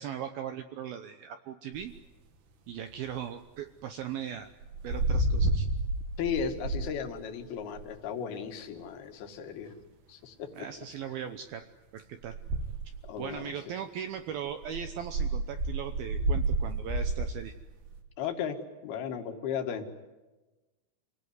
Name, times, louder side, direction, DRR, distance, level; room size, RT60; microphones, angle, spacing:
voice 1, 0.0-1.9 2.7-4.5 4.8-5.7 10.6-11.6 11.9-12.4 13.2-17.5, right 9 dB, 80° right, 8 dB, 2.2 m, -38 dB
sound 1, 1.7-2.0 4.6-6.9 7.4-7.9 12.2-13.2 14.5-17.6 17.9-18.0, right 2 dB, 60° right, 3.9 m, -30 dB
voice 2, 6.2-9.7 10.1-10.7 13.0-13.5 18.2-19.9, left 7 dB, 60° left, 5 dB, 3.5 m, -35 dB
28.0 x 19.0 x 9.6 m, 1.1 s
omnidirectional pair, 5.6 m